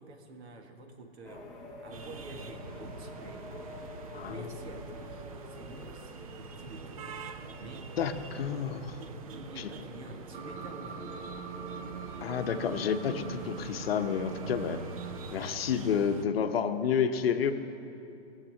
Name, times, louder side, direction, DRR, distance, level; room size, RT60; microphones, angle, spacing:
voice 1, 0.0-1.5 1.8-3.5 4.2-7.1 7.6-7.9 9.3-11.1, right 2 dB, 75° right, 4 dB, 1.8 m, -49 dB
sound 1, 1.2-14.8, left 2 dB, ahead, 1.2 m, -48 dB
sound 2, 1.9-16.3, right 4 dB, 35° right, 0.4 m, -45 dB
voice 2, 4.1-4.5 8.0-9.0 9.6-9.7 12.2-14.8 15.3-17.5, left 7 dB, 60° left, 8 dB, 0.9 m, -30 dB
sound 3, 10.3-15.4, right 6 dB, 50° right, 1.3 m, -42 dB
17.0 x 7.5 x 7.5 m, 2.8 s
hypercardioid pair, 165°, 33 cm